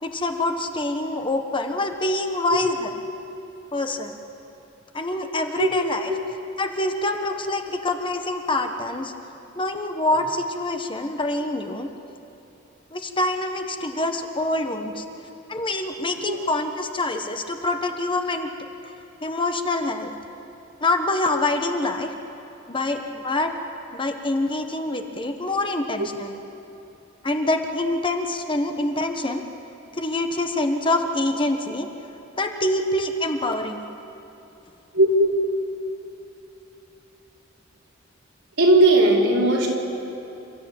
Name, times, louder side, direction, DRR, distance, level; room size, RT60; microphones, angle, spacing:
voice 1, 0.0-2.9 3.7-4.1 4.9-6.1 6.6-9.1 9.5-11.9 12.9-15.0 15.5-18.5 19.2-20.1 20.8-22.1 22.7-23.5 23.9-26.4 27.2-29.4 29.9-31.9 32.4-33.8, left 2 dB, 25° left, 5 dB, 1.3 m, -25 dB
voice 2, 34.9-35.3 38.6-39.7, right 1 dB, 70° right, -3 dB, 4.9 m, -17 dB
29.0 x 14.0 x 8.9 m, 2.9 s
head